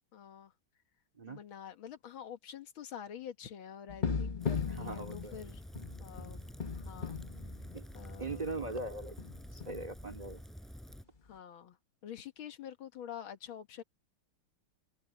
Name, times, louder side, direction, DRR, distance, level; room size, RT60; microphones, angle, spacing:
voice 1, 0.1-0.5 1.3-5.6 6.0-6.4 6.7-7.2 7.9-8.5 11.2-11.8 12.0-13.8, left 9 dB, 70° left, 2.3 m, -47 dB
sound 1, 3.9-8.5 8.8-8.9 9.2-9.9 11.3-11.4, left 6 dB, 30° left, 1.1 m, -38 dB
Rain, 4.4-11.0, equal, ahead, 5.2 m, -48 dB
voice 2, 4.8-5.4 7.7-7.9 8.2-9.2 9.5-10.4, right 3 dB, 20° right, 2.5 m, -40 dB
omnidirectional pair, 2.3 m